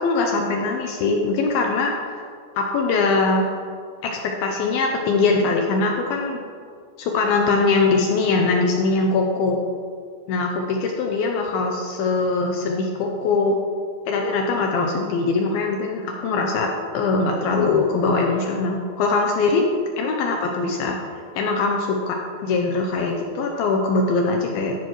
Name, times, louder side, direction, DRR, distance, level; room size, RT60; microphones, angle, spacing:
voice 1, 0.0-2.2 2.6-3.5 4.0-6.4 7.0-9.6 10.3-13.6 14.1-16.7 16.9-19.6 20.0-21.0 21.4-22.2 22.4-24.8, left 3 dB, 80° left, 1 dB, 2.2 m, -22 dB
13.5 x 10.5 x 3.1 m, 2.2 s
omnidirectional pair, 5.1 m